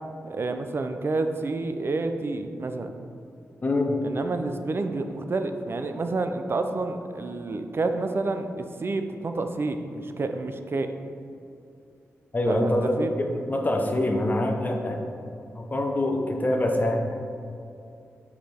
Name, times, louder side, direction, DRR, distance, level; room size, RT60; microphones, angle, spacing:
voice 1, 0.2-2.9 4.0-8.5 8.8-10.9 12.5-13.1, right 3 dB, 45° right, 7 dB, 0.5 m, -29 dB
voice 2, 3.6-4.0 12.3-15.0 15.5-17.2, left 1 dB, 35° left, 2 dB, 0.8 m, -25 dB
5.1 x 4.8 x 4.4 m, 2.6 s
cardioid pair, 55°, 5 cm